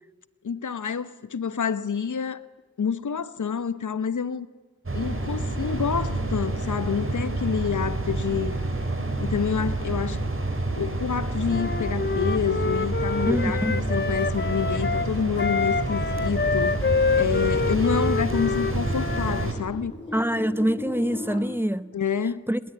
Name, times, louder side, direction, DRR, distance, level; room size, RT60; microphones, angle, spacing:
voice 1, 0.4-2.4 2.8-4.5 4.9-8.5 9.2-10.2 10.8-16.8 17.1-19.9 21.9-22.4, left 6 dB, 80° left, 1.1 m, -28 dB
sound 1, 4.9-19.5, right 2 dB, 45° right, 4.9 m, -28 dB
Wind instrument woodwind instrument, 11.5-19.5, left 5 dB, 35° left, 0.9 m, -27 dB
voice 2, 13.3-13.7 20.1-21.9 22.5-22.6, equal, 5° right, 0.8 m, -25 dB
sound 2, 16.9-21.4, left 2 dB, 20° left, 6.6 m, -39 dB
21.0 x 20.5 x 9.9 m
wide cardioid pair, 60°, 30 cm